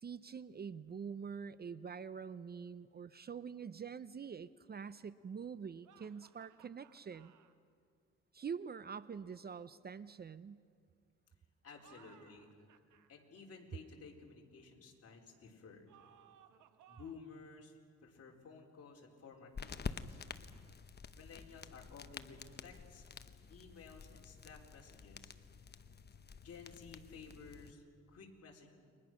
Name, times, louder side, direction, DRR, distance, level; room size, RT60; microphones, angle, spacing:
voice 1, 0.0-7.3 8.3-10.6, right 6 dB, 30° right, 15 dB, 0.6 m, -45 dB
battle laugh, 5.8-7.5 11.7-13.1 15.9-17.4, right 10 dB, 80° right, 1.4 m, -64 dB
voice 2, 11.6-15.8 16.9-20.2 21.1-23.1 23.5-25.3 26.4-28.7, left 5 dB, 55° left, 0 dB, 4.5 m, -55 dB
sound 1, 19.5-27.7, left 5 dB, 35° left, 1.1 m, -49 dB
29.5 x 23.0 x 6.3 m, 2.2 s
cardioid pair, 90°, 30 cm